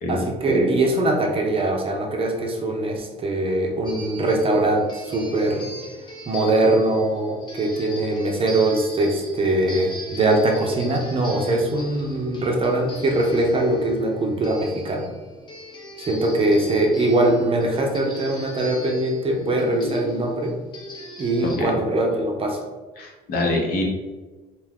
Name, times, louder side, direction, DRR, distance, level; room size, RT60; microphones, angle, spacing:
voice 1, 0.1-5.7 6.3-15.1 16.0-20.6 21.2-22.6, right 2 dB, 35° right, 1 dB, 0.5 m, -22 dB
sound 1, 3.8-21.6, equal, 25° left, 0.7 m, -38 dB
voice 2, 23.0-23.8, left 2 dB, 60° left, 0 dB, 0.8 m, -25 dB
2.5 x 2.3 x 3.4 m, 1.3 s
cardioid pair, 110°, 17 cm